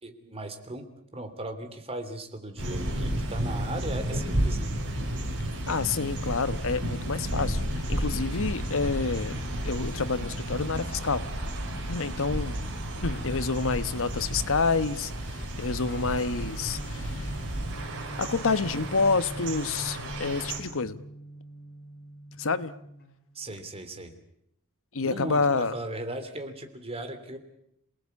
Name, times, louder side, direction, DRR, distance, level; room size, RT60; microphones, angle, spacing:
voice 1, 0.0-4.7 7.9-8.2 23.3-24.1 25.0-27.4, right 1 dB, 25° right, 7 dB, 3.1 m, -38 dB
sound 1, 2.6-20.6, right 1 dB, 60° right, 6.0 m, -32 dB
voice 2, 5.7-11.2 11.9-12.6 13.0-17.3 18.2-21.0 22.4-22.7 24.9-25.7, left 4 dB, 65° left, 13 dB, 1.2 m, -28 dB
Guitar, 15.9-23.6, right 2 dB, 45° left, 6.5 m, -46 dB
28.0 x 19.0 x 8.4 m, 0.75 s
head